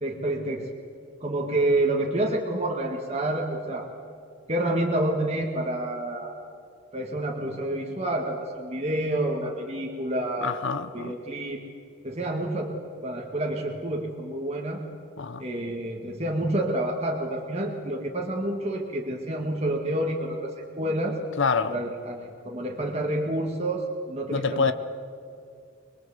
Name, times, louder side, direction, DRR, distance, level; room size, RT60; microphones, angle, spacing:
voice 1, 0.0-0.7 1.2-3.9 4.5-6.3 6.9-10.6 10.9-11.6 12.0-12.7 13.0-14.8 15.4-21.2 21.7-24.7, right 1 dB, 30° right, 2.0 m, -28 dB
voice 2, 10.4-11.1 15.2-15.4 21.4-21.7 24.3-24.7, left 5 dB, 55° left, 0.8 m, -26 dB
24.5 x 21.5 x 7.9 m
head